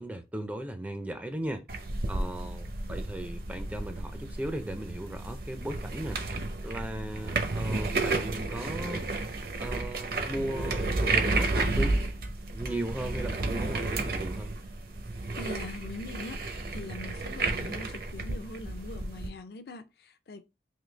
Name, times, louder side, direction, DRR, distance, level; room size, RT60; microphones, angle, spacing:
voice 1, 0.0-1.7 2.1-6.2 6.6-9.1 9.6-12.0 12.5-14.5, right 1 dB, 10° right, 0.4 m, -37 dB
sound 1, 1.7-19.3, right 2 dB, 55° right, 0.7 m, -32 dB
voice 2, 15.4-20.4, left 3 dB, 60° left, 0.4 m, -42 dB
3.8 x 2.6 x 3.2 m
head